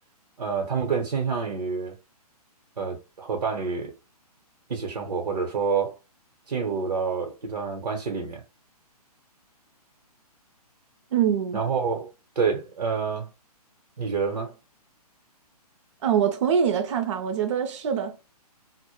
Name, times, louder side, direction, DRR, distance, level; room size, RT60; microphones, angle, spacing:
voice 1, 0.4-1.9 2.8-3.9 4.7-6.0 6.5-8.4 11.5-13.3 14.0-14.6, right 5 dB, 75° right, 0.8 m, -28 dB
voice 2, 11.1-11.6 16.0-18.2, right 8 dB, 50° right, 0.5 m, -24 dB
2.1 x 2.1 x 2.9 m
hypercardioid pair, 145°, 20 cm